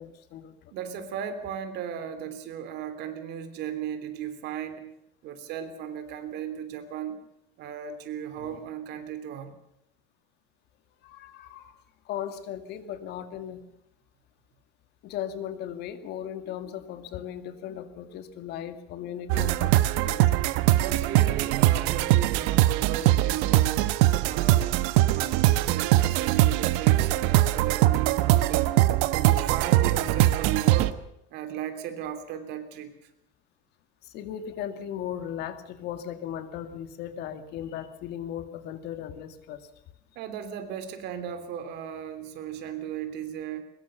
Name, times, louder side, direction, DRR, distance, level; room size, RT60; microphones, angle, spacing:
voice 1, 0.0-0.7 8.4-8.5 11.0-11.8 12.1-13.6 15.0-20.4 34.0-39.7, left 10 dB, 55° left, 10 dB, 2.0 m, -37 dB
voice 2, 0.7-4.9 5.2-7.2 7.6-9.5 20.8-23.9 24.2-24.7 25.1-28.7 29.1-30.9 31.3-33.1 40.1-43.6, right 9 dB, 55° right, 8 dB, 3.1 m, -36 dB
sound 1, 19.3-30.9, right 15 dB, 85° right, 1.2 m, -22 dB
22.5 x 21.0 x 7.0 m, 0.79 s
cardioid pair, 165°, 20 cm